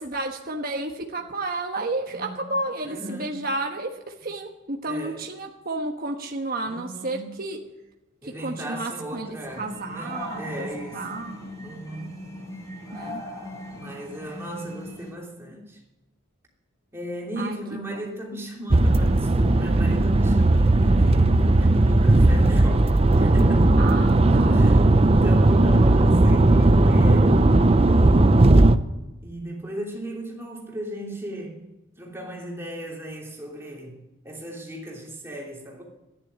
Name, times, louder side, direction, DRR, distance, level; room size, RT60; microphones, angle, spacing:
voice 1, 0.0-7.6 8.2-11.5 12.9-13.2 17.4-18.1 23.8-24.6, right 2 dB, 45° right, 1.3 m, -32 dB
voice 2, 2.1-2.5 2.8-3.5 4.9-5.2 6.6-7.3 8.2-11.2 11.6-12.2 13.7-15.8 16.9-23.8 24.5-27.5 27.8-31.6 32.0-35.8, right 1 dB, 10° right, 3.0 m, -36 dB
sound 1, 9.4-15.1, left 1 dB, 15° left, 4.0 m, -39 dB
sound 2, 18.7-28.8, right 2 dB, 30° right, 0.6 m, -17 dB
13.5 x 10.5 x 9.9 m
head